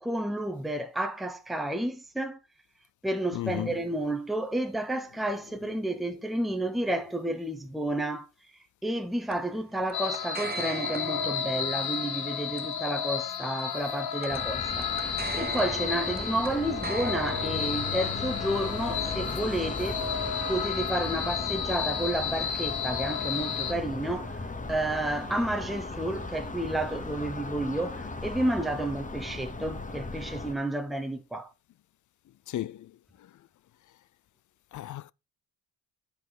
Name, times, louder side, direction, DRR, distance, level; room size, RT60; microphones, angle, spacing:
voice 1, 0.0-2.4 3.0-8.3 8.8-14.9 15.3-20.0 20.5-24.3 24.7-31.5, right 1 dB, ahead, 1.0 m, -31 dB
voice 2, 3.3-3.8 23.7-23.8 27.5-27.6 32.5-33.3 34.7-35.1, left 13 dB, 50° left, 0.5 m, -36 dB
sound 1, 9.3-21.9, right 6 dB, 25° right, 0.5 m, -43 dB
sound 2, 9.9-23.7, left 7 dB, 65° left, 1.5 m, -32 dB
sound 3, 14.3-30.5, left 3 dB, 20° left, 1.2 m, -37 dB
9.3 x 5.1 x 4.0 m
cardioid pair, 75°, 40 cm